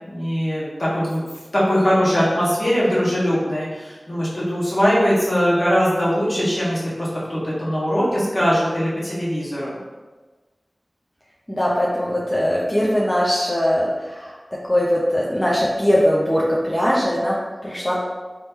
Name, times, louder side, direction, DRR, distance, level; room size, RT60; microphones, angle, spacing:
voice 1, 0.1-9.8, equal, 50° left, -7 dB, 1.3 m, -21 dB
voice 2, 11.5-14.4 14.7-18.0, equal, 10° left, -6 dB, 0.6 m, -20 dB
3.0 x 3.0 x 3.5 m, 1.3 s
wide cardioid pair, 50°, 0 cm